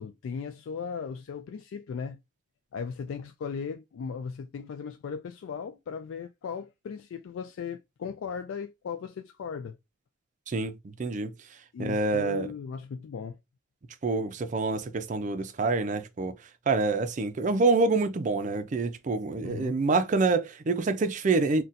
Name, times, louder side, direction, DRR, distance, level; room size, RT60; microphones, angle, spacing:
voice 1, 0.0-2.2 2.7-9.7 11.7-13.4 19.4-19.8, left 6 dB, 70° left, 0.3 m, -37 dB
voice 2, 10.5-11.3 11.8-12.5 14.0-16.3 16.7-21.6, right 3 dB, 35° right, 0.4 m, -26 dB
4.0 x 2.2 x 2.5 m
head